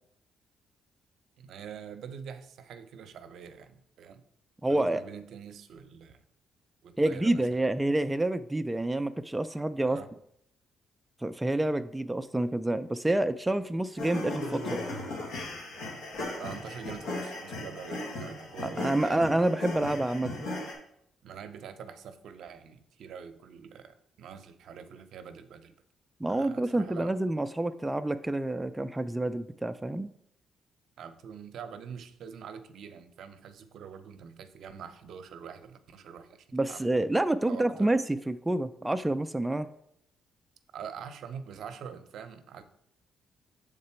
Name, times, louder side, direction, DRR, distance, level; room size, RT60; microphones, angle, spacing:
voice 1, 1.4-4.2 4.7-6.2 6.8-7.7 9.8-10.1 16.4-19.3 21.2-25.8 26.3-27.1 31.0-36.9 37.5-37.9 40.7-42.6, right 7 dB, 70° right, 10 dB, 0.6 m, -44 dB
voice 2, 4.6-5.0 7.0-10.0 11.2-14.8 18.6-20.5 26.2-30.1 36.5-39.7, right 1 dB, 10° right, 10 dB, 0.3 m, -28 dB
sound 1, 14.0-20.7, left 2 dB, 85° left, 1.6 m, -37 dB
6.6 x 3.7 x 4.3 m, 0.73 s
cardioid pair, 90°, 0 cm